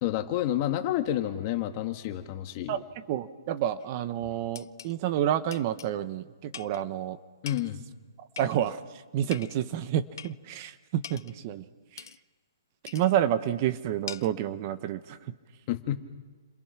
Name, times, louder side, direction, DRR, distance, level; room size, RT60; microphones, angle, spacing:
voice 1, 0.0-2.8 7.4-7.8 15.7-16.0, left 12 dB, 30° left, 6 dB, 2.0 m, -29 dB
voice 2, 3.1-7.2 8.2-11.7 11.9-12.1 12.8-15.2, right 11 dB, 30° right, 11 dB, 1.1 m, -29 dB
sound 1, 3.8-3.9 4.6-5.0 5.5-5.9 6.5-6.8 7.5-7.8 8.4-8.8 9.3-9.6 10.2-10.4 11.0-11.4 12.0-12.2 12.9-13.1 14.1-14.4, left 8 dB, 65° left, 0.8 m, -43 dB
30.0 x 27.0 x 6.0 m, 1.3 s
hypercardioid pair, 160°, 2 cm